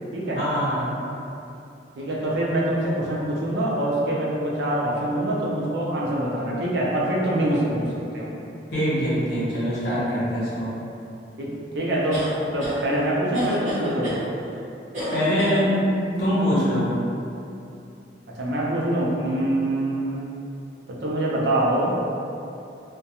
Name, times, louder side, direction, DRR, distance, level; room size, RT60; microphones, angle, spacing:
voice 1, 0.4-0.9 8.7-10.7 15.1-16.9, equal, 60° left, -10 dB, 0.8 m, -23 dB
voice 2, 2.0-8.3 11.4-12.2 12.5-14.2 18.3-20.2 20.9-21.9, right 1 dB, 70° right, -4 dB, 0.5 m, -24 dB
sound 1, 12.1-12.8 13.3-14.2 14.9-15.6, equal, 45° right, 0.8 m, -31 dB
2.3 x 2.2 x 2.8 m, 2.7 s
head